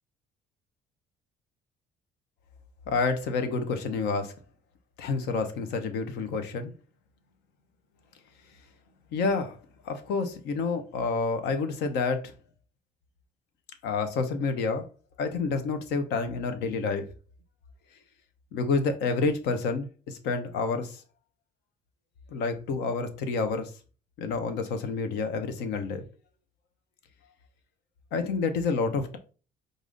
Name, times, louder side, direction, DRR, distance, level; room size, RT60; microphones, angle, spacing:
voice 1, 2.9-4.3 5.0-6.7 9.1-9.6 9.8-12.3 13.8-14.8 15.2-17.0 18.5-21.0 22.3-23.7 24.2-26.0 28.1-29.2, left 4 dB, 85° left, 8 dB, 0.9 m, -29 dB
4.8 x 2.7 x 3.9 m, 0.36 s
cardioid pair, 110°, 17 cm